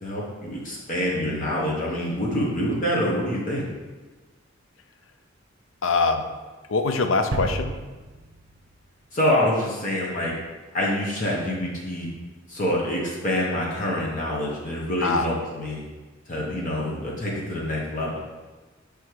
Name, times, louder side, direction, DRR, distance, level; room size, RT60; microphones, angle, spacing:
voice 1, 0.0-3.7 9.1-10.3 10.7-12.1 12.5-15.8 16.3-18.2, left 1 dB, 40° left, -4 dB, 0.9 m, -26 dB
voice 2, 5.8-6.3 6.7-7.7 15.0-15.3, left 3 dB, 70° left, 7 dB, 0.5 m, -23 dB
sound 1, 7.3-9.4, right 2 dB, 75° right, 0.6 m, -33 dB
6.4 x 3.5 x 4.6 m, 1.3 s
head